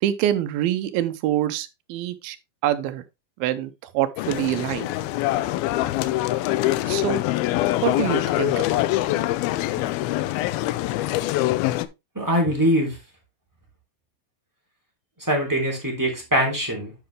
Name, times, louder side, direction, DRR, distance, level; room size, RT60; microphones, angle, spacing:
voice 1, 0.0-2.4 2.6-3.0 3.4-4.9 6.9-7.2 7.8-8.8, right 12 dB, 85° right, 2.6 m, -25 dB
sound 1, 4.2-11.9, left 16 dB, 85° left, 2.5 m, -24 dB
voice 2, 12.1-13.0 15.2-16.9, equal, 5° right, 2.5 m, -22 dB
10.0 x 5.8 x 3.3 m
omnidirectional pair, 4.3 m